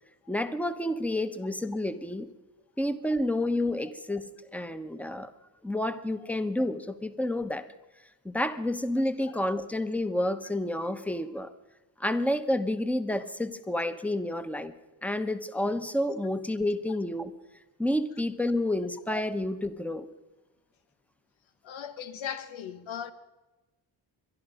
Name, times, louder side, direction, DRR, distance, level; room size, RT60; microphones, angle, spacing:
voice 1, 0.3-2.3 2.8-4.3 4.5-5.3 5.6-7.7 8.2-11.5 12.0-14.7 15.0-17.3 17.8-20.1, left 1 dB, 5° left, 1.1 m, -29 dB
voice 2, 21.6-23.1, left 8 dB, 85° left, 1.2 m, -38 dB
22.5 x 11.5 x 5.1 m
cardioid pair, 65°, 46 cm